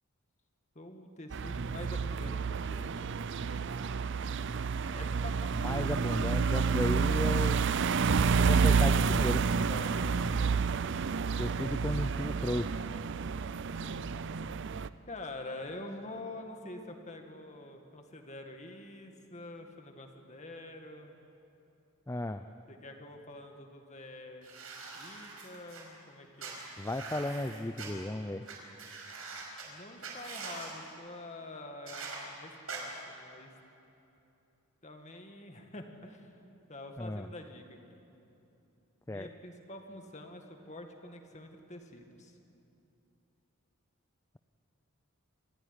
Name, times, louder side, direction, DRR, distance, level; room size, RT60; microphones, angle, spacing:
voice 1, 0.8-3.1 4.9-5.7 9.6-10.3 15.1-21.2 22.7-26.6 29.7-33.5 34.8-36.3 36.7-38.0 39.1-42.3, left 2 dB, 30° left, 4 dB, 2.0 m, -46 dB
sound 1, 1.3-14.9, right 5 dB, 55° right, 0.5 m, -29 dB
voice 2, 5.5-7.7 8.3-9.5 11.4-12.9 22.1-22.5 26.8-28.4 37.0-37.3 39.1-39.3, left 1 dB, 15° left, 8 dB, 0.5 m, -35 dB
sound 2, 24.4-25.8 26.4-27.9 28.5-28.6 28.8-29.6 30.0-30.7 31.9-32.2 32.7-32.8, right 4 dB, 75° right, 5.4 m, -43 dB
26.5 x 15.0 x 9.9 m, 2.9 s
head